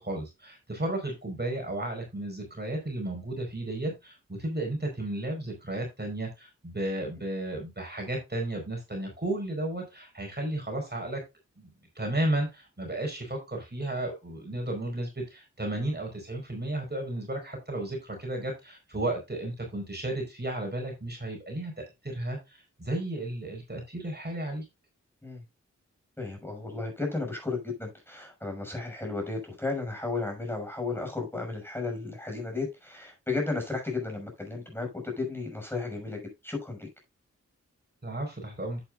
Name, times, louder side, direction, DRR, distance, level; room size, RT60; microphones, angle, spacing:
voice 1, 0.0-11.2 11.6-24.6 38.0-38.8, right 1 dB, 35° right, 4.5 m, -33 dB
voice 2, 26.2-36.9, left 3 dB, 10° left, 6.1 m, -34 dB
11.0 x 8.6 x 2.4 m
wide cardioid pair, 60°, 30 cm